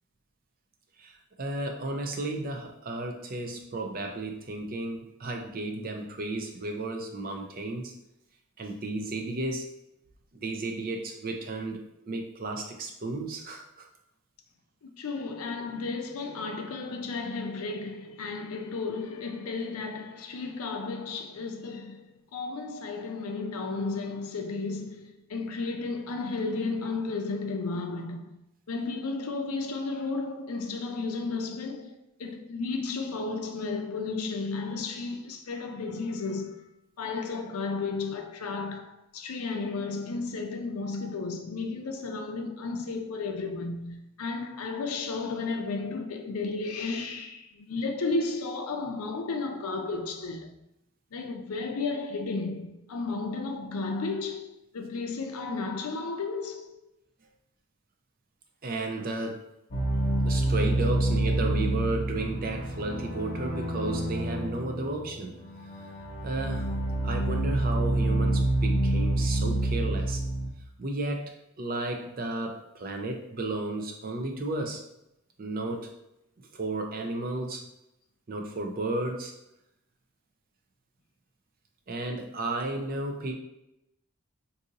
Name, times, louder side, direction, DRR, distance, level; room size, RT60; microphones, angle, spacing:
voice 1, 1.0-7.9 8.6-9.7 10.4-11.8 12.1-13.9 58.6-59.4 60.2-65.3 66.2-66.7 67.0-70.2 70.8-74.8 75.4-75.9 76.5-77.6 78.3-79.3 81.9-83.3, right 2 dB, 40° right, 0.4 m, -33 dB
voice 2, 14.8-28.4 28.7-31.9 32.2-36.6 37.0-50.5 51.1-54.5 54.7-56.8, left 3 dB, 80° left, 0.5 m, -33 dB
sound 1, 59.7-70.5, right 1 dB, 40° left, 0.8 m, -28 dB
2.6 x 2.6 x 3.9 m
head